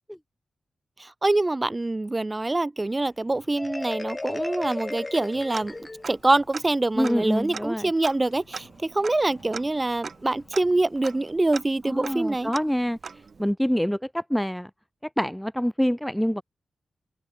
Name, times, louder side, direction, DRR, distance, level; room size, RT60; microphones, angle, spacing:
voice 1, 1.0-5.7 6.1-12.5, right 2 dB, 25° right, 1.3 m, -25 dB
sound 1, 2.8-11.3, left 5 dB, 55° left, 7.8 m, -58 dB
Marimba xylophone, 3.6-6.3, left 2 dB, 30° left, 1.1 m, -34 dB
Tick-tock, 5.5-6.3 6.5-6.6 7.0-13.5, right 5 dB, 60° right, 0.9 m, -40 dB
voice 2, 7.0-7.8 11.9-13.0 13.4-14.7 15.2-16.4, equal, 5° left, 0.4 m, -25 dB
open air
cardioid pair, 50°, 0 cm